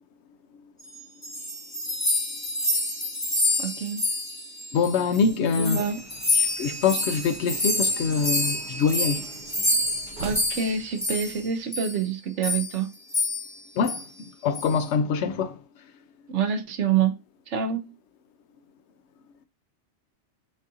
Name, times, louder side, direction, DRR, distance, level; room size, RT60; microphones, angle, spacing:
sound 1, 1.0-5.2 5.5-11.4 11.7-12.0 12.4-12.8 13.1-13.6 13.8-14.0 14.6-14.8, left 2 dB, 15° left, 0.9 m, -28 dB
voice 1, 3.6-4.0 5.6-6.0 10.2-12.9 16.3-17.2 17.5-17.9, right 7 dB, 75° right, 1.1 m, -27 dB
voice 2, 4.7-5.8 6.4-9.3 13.8-14.0 14.4-15.6, left 5 dB, 70° left, 0.8 m, -24 dB
sound 2, 5.8-11.6, right 3 dB, 50° right, 0.7 m, -42 dB
7.3 x 2.5 x 2.7 m
omnidirectional pair, 1.3 m